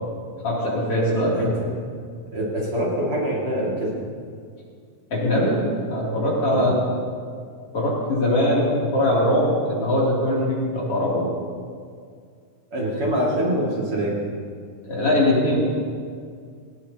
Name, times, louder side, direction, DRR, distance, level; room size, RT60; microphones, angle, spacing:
voice 1, 0.4-1.5 5.1-5.6 5.9-6.7 7.7-11.3 14.9-15.6, left 1 dB, 45° left, -6 dB, 3.9 m, -21 dB
voice 2, 1.2-1.7 2.3-4.0 6.5-6.7 12.7-14.1, equal, 45° right, -5 dB, 3.1 m, -25 dB
18.5 x 18.5 x 3.0 m, 2.1 s
omnidirectional pair, 3.7 m